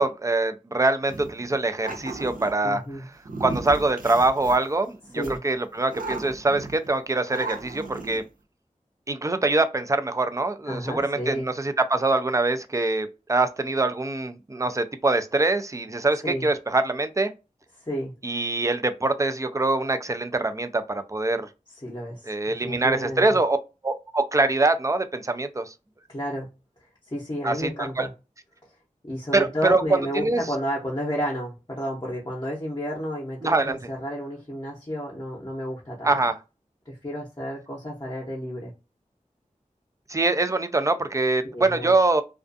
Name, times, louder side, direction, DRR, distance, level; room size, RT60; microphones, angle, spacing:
voice 1, 0.0-2.8 3.4-8.2 9.1-17.3 18.2-21.5 22.3-23.6 23.8-25.7 27.4-28.1 29.3-30.4 33.4-33.8 36.0-36.4 40.1-42.2, right 2 dB, 25° right, 0.4 m, -24 dB
sound 1, 1.1-2.5 3.2-4.8 5.2-5.4 5.9-6.9 7.3-8.2, right 3 dB, 90° right, 0.5 m, -35 dB
voice 2, 2.6-3.0 5.1-5.4 10.7-11.5 16.2-16.5 17.8-18.1 21.8-22.3 22.6-23.2 26.1-26.5 27.1-28.1 29.0-36.2 36.9-38.7 41.5-41.9, equal, 30° left, 0.7 m, -31 dB
2.4 x 2.3 x 2.5 m
wide cardioid pair, 55°, 14 cm